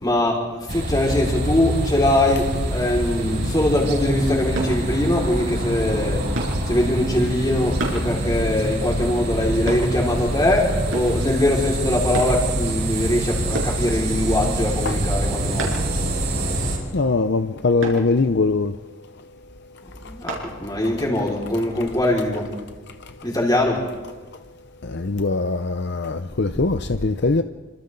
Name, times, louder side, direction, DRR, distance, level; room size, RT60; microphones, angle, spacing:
voice 1, 0.0-6.3 6.7-15.7 20.0-22.5 23.2-23.8, left 1 dB, 20° left, 5.1 m, -22 dB
sound 1, 0.7-16.8, right 1 dB, 55° right, 5.8 m, -25 dB
sound 2, 4.6-4.8 6.4-6.6 7.8-8.0 9.7-9.9 10.9-11.2 12.1-12.4 13.5-13.8 15.6-15.9 17.8-18.0 20.3-20.5 21.0-21.2, right 2 dB, 90° right, 6.5 m, -29 dB
voice 2, 16.9-18.8 20.0-20.4 22.9-23.0 24.8-27.4, left 3 dB, 60° left, 0.7 m, -22 dB
29.0 x 26.0 x 4.0 m
head